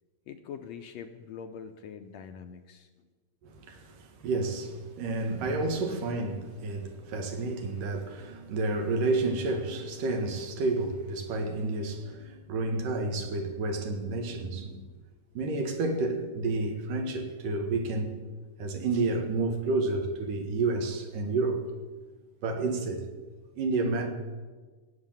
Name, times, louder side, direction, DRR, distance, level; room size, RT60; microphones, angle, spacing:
voice 1, 0.3-2.9, left 7 dB, 75° left, 1.7 m, -43 dB
voice 2, 3.4-14.9 15.3-18.1 18.6-21.7 22.4-23.0 23.6-24.1, right 3 dB, 90° right, 3.3 m, -30 dB
17.0 x 8.8 x 8.9 m
omnidirectional pair, 3.7 m